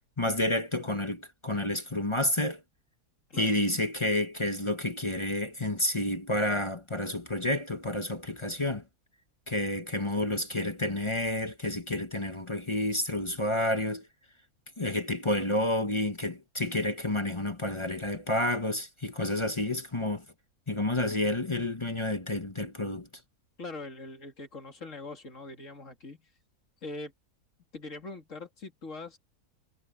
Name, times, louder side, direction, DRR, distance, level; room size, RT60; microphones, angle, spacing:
voice 1, 0.2-2.6 3.3-8.8 9.5-14.1 14.8-20.2 20.7-23.1, left 1 dB, 20° left, 1.1 m, -30 dB
voice 2, 23.6-26.3 26.8-27.1 27.7-29.2, left 3 dB, 55° left, 2.9 m, -42 dB
omnidirectional pair, 1.6 m